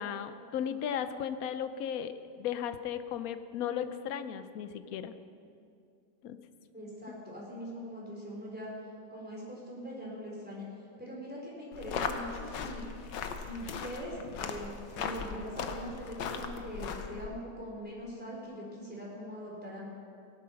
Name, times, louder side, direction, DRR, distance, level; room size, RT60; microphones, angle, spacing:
voice 1, 0.0-5.1 6.2-6.4, left 8 dB, 65° left, 10 dB, 1.0 m, -36 dB
voice 2, 6.7-8.7 9.1-10.7 11.0-12.8 13.3-19.9, equal, 5° right, -5 dB, 4.0 m, -42 dB
sound 1, 11.7-17.3, left 6 dB, 85° left, 1.6 m, -38 dB
17.5 x 11.5 x 5.8 m, 2.5 s
omnidirectional pair, 1.9 m